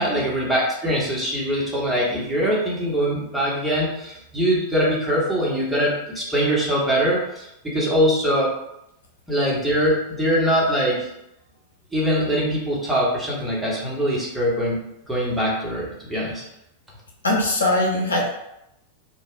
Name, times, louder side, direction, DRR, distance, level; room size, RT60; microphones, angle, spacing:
voice 1, 0.0-8.5 9.3-11.1 11.9-16.4, equal, 5° right, -6 dB, 1.1 m, -22 dB
voice 2, 17.2-18.3, left 1 dB, 75° left, -1 dB, 0.6 m, -20 dB
3.1 x 2.3 x 3.7 m, 0.83 s
figure-of-eight pair, 90°, 0 cm